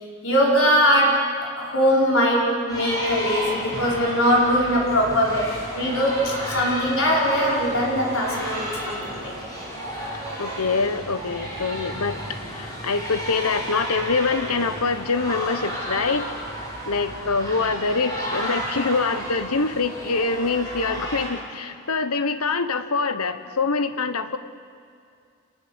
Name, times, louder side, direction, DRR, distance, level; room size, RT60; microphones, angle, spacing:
voice 1, 0.2-9.3, equal, 70° left, -3 dB, 5.5 m, -21 dB
sound 1, 2.7-21.3, equal, 15° left, 6.9 m, -32 dB
voice 2, 10.4-16.3 16.9-24.4, left 4 dB, 85° left, 10 dB, 1.1 m, -25 dB
27.5 x 19.0 x 8.1 m, 2.4 s
head